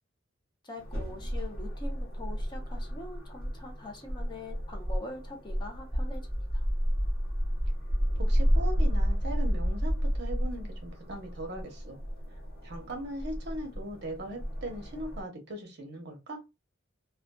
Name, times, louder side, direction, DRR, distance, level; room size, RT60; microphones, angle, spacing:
voice 1, 0.6-6.3 6.5-6.7, left 2 dB, 25° left, 0.6 m, -44 dB
sound 1, 0.8-15.2, equal, 55° left, 1.0 m, -31 dB
voice 2, 8.2-12.0 12.6-16.4, right 1 dB, 60° right, 0.8 m, -39 dB
2.4 x 2.3 x 2.2 m
head